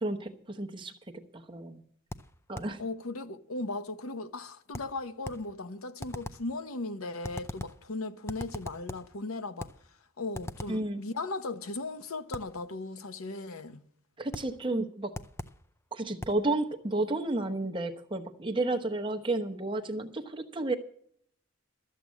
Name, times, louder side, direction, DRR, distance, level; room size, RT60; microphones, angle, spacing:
voice 1, 0.0-0.9 1.3-1.8 2.5-2.8 10.7-11.0 14.2-15.1 15.9-20.7, right 2 dB, 25° right, 1.0 m, -32 dB
sound 1, 2.1-2.8 4.7-5.5 6.0-6.5 7.2-7.9 8.3-9.1 9.6-9.9 10.3-10.9 12.3-12.6 14.3-14.6 15.1-15.7 16.2-16.5, left 1 dB, 10° left, 0.4 m, -41 dB
voice 2, 2.8-9.7 10.2-13.8, left 2 dB, 85° left, 0.9 m, -37 dB
13.0 x 7.6 x 8.4 m
head